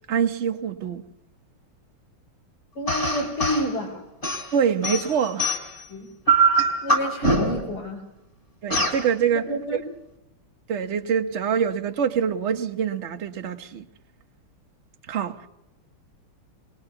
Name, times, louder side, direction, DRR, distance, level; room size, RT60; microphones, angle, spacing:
voice 1, 0.1-1.0 4.5-5.5 8.6-9.5 10.7-13.8 15.1-15.5, right 7 dB, 45° right, 0.9 m, -25 dB
voice 2, 2.7-4.0 5.9-6.1 6.8-8.0 9.3-9.8, equal, 75° left, 6.5 m, -29 dB
sound 1, 2.9-3.7 4.2-5.8 6.3-7.7 8.7-9.0, right 2 dB, 30° left, 4.0 m, -22 dB
24.5 x 21.5 x 6.9 m
omnidirectional pair, 2.4 m